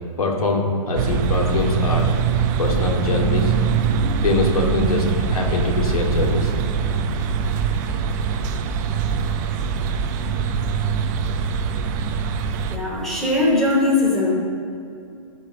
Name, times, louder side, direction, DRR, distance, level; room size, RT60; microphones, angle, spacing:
voice 1, 0.2-2.1 2.6-3.5 4.2-6.5, left 2 dB, 85° left, 0 dB, 2.4 m, -23 dB
sound 1, 0.9-12.8, right 6 dB, 30° right, 0.7 m, -22 dB
voice 2, 12.7-14.3, left 2 dB, ahead, -7 dB, 3.1 m, -20 dB
13.5 x 5.4 x 7.6 m, 2.5 s
hypercardioid pair, 155°, 18 cm